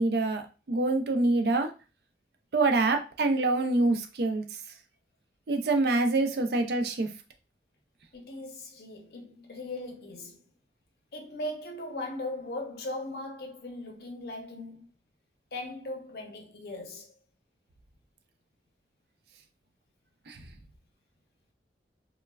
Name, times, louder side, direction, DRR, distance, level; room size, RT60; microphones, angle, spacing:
voice 1, 0.0-1.7 2.5-4.5 5.5-7.1 20.3-20.4, right 2 dB, 60° right, 0.4 m, -26 dB
voice 2, 8.1-10.4 11.1-14.9 15.5-17.1, left 1 dB, 60° left, 0.6 m, -39 dB
3.1 x 2.1 x 2.3 m
head